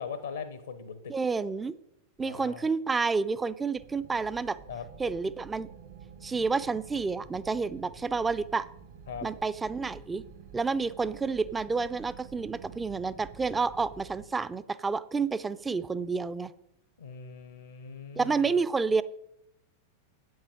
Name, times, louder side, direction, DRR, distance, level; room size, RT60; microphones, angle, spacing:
voice 1, 0.0-1.1 2.2-2.7 4.7-4.8 9.1-9.3 17.0-18.5, left 6 dB, 70° left, 10 dB, 0.8 m, -40 dB
voice 2, 1.1-1.8 2.2-4.6 5.0-5.7 6.2-8.7 9.2-10.2 10.5-16.5 18.2-19.0, right 4 dB, 15° right, 15 dB, 0.4 m, -29 dB
sound 1, 3.7-14.2, right 6 dB, 50° right, 1.0 m, -49 dB
8.7 x 7.9 x 5.0 m, 0.78 s
figure-of-eight pair, 90°, 0 cm